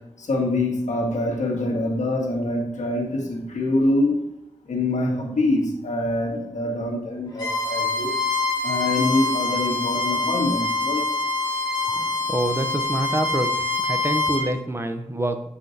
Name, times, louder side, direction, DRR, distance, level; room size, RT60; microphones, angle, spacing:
voice 1, 0.2-4.2 4.7-8.1 8.6-11.1 11.8-12.0, left 2 dB, 85° left, 0 dB, 1.4 m, -25 dB
Bowed string instrument, 7.4-14.4, left 3 dB, 35° left, 1.8 m, -25 dB
voice 2, 11.9-13.6 13.9-15.5, right 1 dB, 20° right, 7 dB, 0.5 m, -26 dB
7.6 x 5.6 x 2.7 m, 0.85 s
wide cardioid pair, 80°, 12 cm